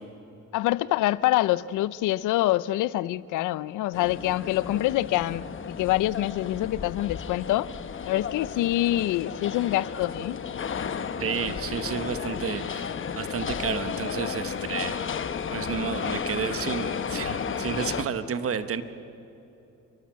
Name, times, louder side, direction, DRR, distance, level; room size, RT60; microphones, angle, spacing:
voice 1, 0.5-7.7 8.1-10.4, left 15 dB, 85° left, 19 dB, 0.6 m, -25 dB
sound 1, 3.9-18.0, left 7 dB, 40° left, 1.0 m, -33 dB
voice 2, 11.2-15.0 15.5-18.8, right 7 dB, 50° right, 11 dB, 1.1 m, -31 dB
30.0 x 12.0 x 7.5 m, 2.9 s
cardioid pair, 90°, 30 cm